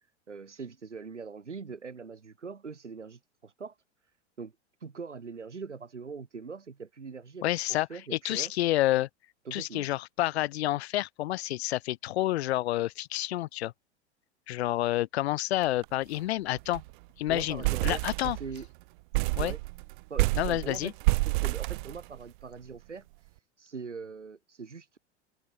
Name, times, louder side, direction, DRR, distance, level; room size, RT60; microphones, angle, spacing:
voice 1, 0.3-3.8 4.4-4.5 4.8-8.5 9.5-9.9 17.3-18.7 19.4-19.6 20.1-20.9 21.3-23.1 23.6-25.0, right 5 dB, 85° right, 7.2 m, -42 dB
voice 2, 7.4-9.1 9.5-13.7 14.5-16.8 17.2-18.4 19.4-19.5 20.4-20.9, left 15 dB, 65° left, 0.9 m, -29 dB
sound 1, 15.6-15.9 16.1-16.2 16.6-16.9 17.3-18.7 19.1-22.4, right 24 dB, 45° right, 0.4 m, -29 dB
figure-of-eight pair, 90°, 35 cm